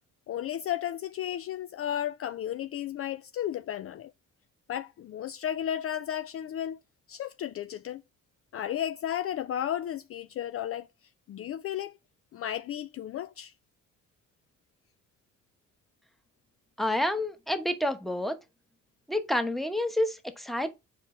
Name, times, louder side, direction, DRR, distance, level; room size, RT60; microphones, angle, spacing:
voice 1, 0.3-4.1 4.7-6.8 7.1-8.0 8.5-10.9 11.3-12.0 12.3-13.5, left 11 dB, 50° left, 0.4 m, -33 dB
voice 2, 16.8-18.4 19.1-20.7, left 1 dB, ahead, 1.1 m, -29 dB
5.9 x 4.8 x 4.3 m
cardioid pair, 90°, 30 cm